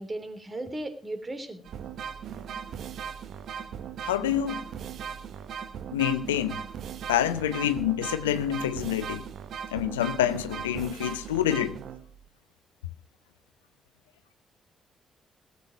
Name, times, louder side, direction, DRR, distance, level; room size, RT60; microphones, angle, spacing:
voice 1, 0.0-1.6, right 1 dB, 25° right, 3.3 m, -36 dB
sound 1, 1.7-12.3, right 8 dB, 65° right, 1.1 m, -38 dB
voice 2, 4.0-4.6 5.9-6.6 7.1-9.2 9.7-11.8, left 11 dB, 85° left, 0.7 m, -27 dB
17.5 x 8.4 x 5.9 m
hypercardioid pair, 40°, 0 cm